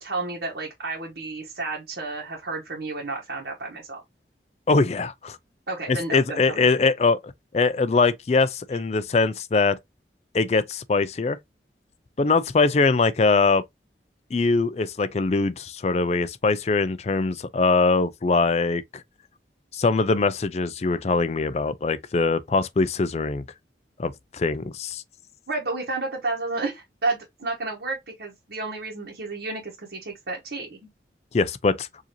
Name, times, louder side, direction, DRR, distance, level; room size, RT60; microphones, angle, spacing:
voice 1, 0.0-4.0 5.7-6.6 25.5-30.9, right 3 dB, 70° right, 1.2 m, -31 dB
voice 2, 4.7-5.4 5.9-7.2 7.5-9.8 10.3-11.4 12.2-13.6 14.3-18.8 19.7-23.4 24.0-25.0 31.3-31.9, left 3 dB, 35° left, 0.4 m, -22 dB
4.8 x 2.7 x 2.9 m
head